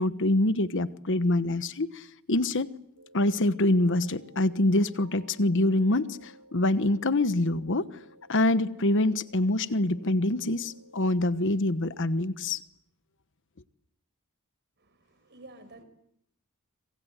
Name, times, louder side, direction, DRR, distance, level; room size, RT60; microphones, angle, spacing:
voice 1, 0.0-2.7 3.1-7.9 8.3-12.6, left 1 dB, 60° left, 13 dB, 1.2 m, -25 dB
sound 1, 3.0-12.1, equal, 80° right, 6.6 m, -55 dB
voice 2, 14.8-15.8, right 2 dB, 50° right, 10 dB, 5.8 m, -51 dB
26.5 x 26.5 x 8.1 m, 0.74 s
head